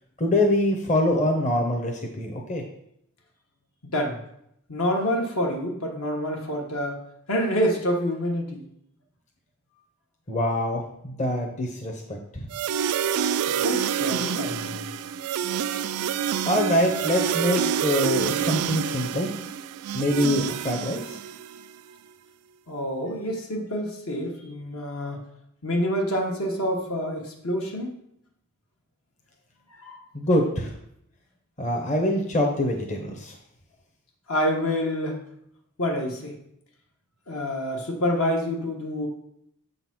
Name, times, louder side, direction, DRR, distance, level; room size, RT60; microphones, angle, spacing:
voice 1, 0.2-2.6 10.3-12.4 16.5-19.3 19.9-21.2 30.1-30.7 31.6-33.3, left 1 dB, 35° left, 1 dB, 0.8 m, -24 dB
voice 2, 3.8-4.2 4.7-7.0 7.3-8.6 13.5-14.9 22.7-25.2 25.6-27.9 29.8-30.0 34.3-35.2 35.8-36.4 37.3-39.1, equal, 70° left, 0 dB, 1.3 m, -27 dB
sound 1, 12.5-21.6, right 8 dB, 85° right, 0.3 m, -27 dB
7.4 x 4.0 x 5.9 m, 0.74 s
head